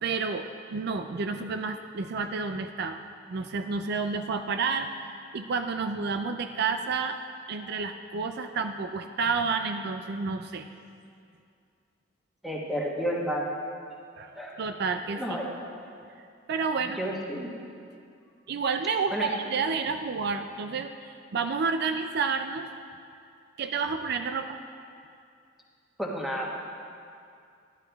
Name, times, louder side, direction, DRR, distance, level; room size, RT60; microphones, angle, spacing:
voice 1, 0.0-3.0 3.3-7.2 7.5-10.7 14.2-15.4 16.5-17.0 18.5-22.7 23.6-24.6, right 5 dB, 60° right, 7 dB, 0.4 m, -30 dB
voice 2, 12.4-13.4 14.3-14.6 15.1-15.5 17.0-17.5 19.1-19.3 26.0-26.5, equal, ahead, -3 dB, 1.3 m, -31 dB
12.0 x 11.0 x 3.5 m, 2.4 s
head